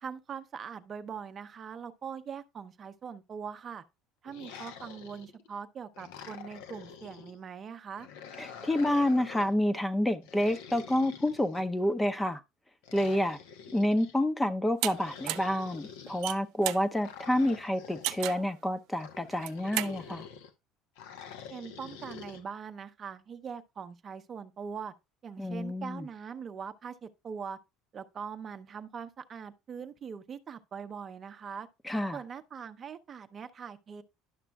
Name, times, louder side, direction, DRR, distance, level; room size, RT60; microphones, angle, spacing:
voice 1, 0.0-3.8 4.2-8.1 21.5-24.9 25.2-27.6 27.9-31.7 32.1-34.0, right 6 dB, 40° right, 0.7 m, -42 dB
sound 1, 4.3-5.5 5.9-7.4 8.0-9.6 10.2-11.9 12.8-14.2 14.9-16.3 17.0-18.3 19.0-20.5 21.0-22.4, left 7 dB, 85° left, 1.0 m, -47 dB
voice 2, 8.4-12.4 12.9-13.4 13.7-20.3 25.4-26.1 31.8-32.2, left 1 dB, 10° left, 0.7 m, -29 dB
sound 2, 14.8-14.9 15.3-15.5 16.1-16.9 18.0-18.5 19.3-19.9, right 16 dB, 70° right, 0.4 m, -33 dB
11.0 x 5.9 x 2.3 m
supercardioid pair, 90°, 0 cm